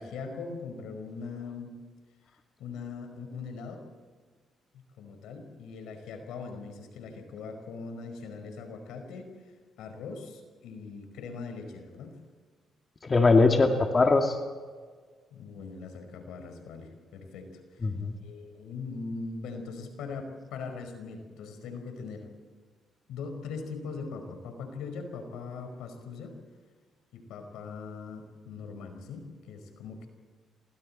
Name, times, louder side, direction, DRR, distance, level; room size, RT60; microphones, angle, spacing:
voice 1, 0.0-1.7 2.6-3.8 4.7-9.3 9.8-12.2 15.3-17.9 18.2-22.3 23.1-26.4 27.1-30.1, left 4 dB, 90° left, 6 dB, 5.0 m, -41 dB
voice 2, 13.0-14.4 17.8-18.1, left 3 dB, 30° left, 3 dB, 2.3 m, -21 dB
28.5 x 22.5 x 4.4 m, 1.5 s
cardioid pair, 90°, 0 cm